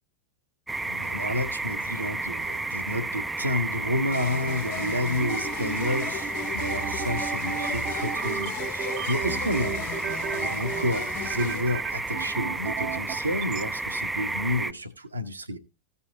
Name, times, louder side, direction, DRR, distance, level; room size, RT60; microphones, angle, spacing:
sound 1, 0.7-14.7, right 2 dB, 10° right, 0.5 m, -32 dB
voice 1, 0.9-15.6, left 1 dB, 80° right, 1.1 m, -30 dB
sound 2, 4.1-11.6, left 13 dB, 50° left, 0.6 m, -37 dB
sound 3, 5.4-13.6, right 9 dB, 40° right, 0.8 m, -35 dB
15.0 x 5.6 x 3.7 m
figure-of-eight pair, 90°, 0 cm